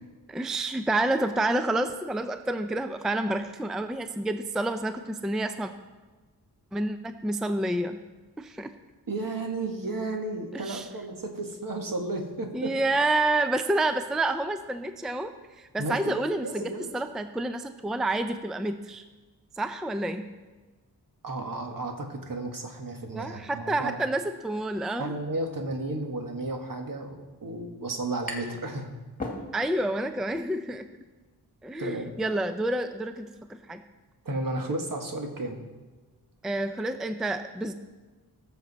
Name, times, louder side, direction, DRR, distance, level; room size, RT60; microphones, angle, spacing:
voice 1, 0.3-5.7 6.7-8.0 8.4-8.7 10.5-10.9 12.5-19.0 19.6-20.3 23.1-25.1 29.5-30.9 31.6-33.8 36.4-37.7, right 2 dB, ahead, 8 dB, 0.4 m, -29 dB
voice 2, 9.1-12.7 15.8-16.1 16.4-16.9 21.2-24.0 25.0-28.9 31.8-32.1 34.3-35.6, right 2 dB, 55° right, 3 dB, 1.7 m, -33 dB
sound 1, 27.6-28.7 29.0-29.9, left 1 dB, 20° left, 1.9 m, -37 dB
20.0 x 6.9 x 4.2 m, 1.3 s
wide cardioid pair, 130°, 39 cm